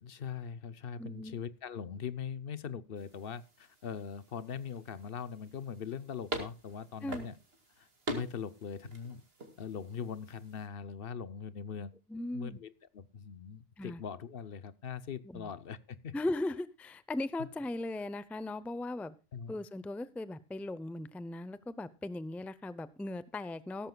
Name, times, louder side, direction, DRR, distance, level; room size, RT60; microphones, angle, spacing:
voice 1, 0.0-7.3 7.8-9.2 9.6-12.0 12.3-16.1 17.4-17.5 19.3-19.5, left 7 dB, 65° left, 16 dB, 0.9 m, -41 dB
voice 2, 1.0-1.4 7.0-7.3 12.1-12.6 13.8-14.0 15.3-15.5 16.1-19.1 19.5-23.9, left 2 dB, ahead, 16 dB, 0.4 m, -38 dB
sound 1, 3.0-10.7, right 1 dB, 75° right, 2.5 m, -45 dB
16.0 x 13.5 x 2.3 m, 0.30 s
omnidirectional pair, 1.0 m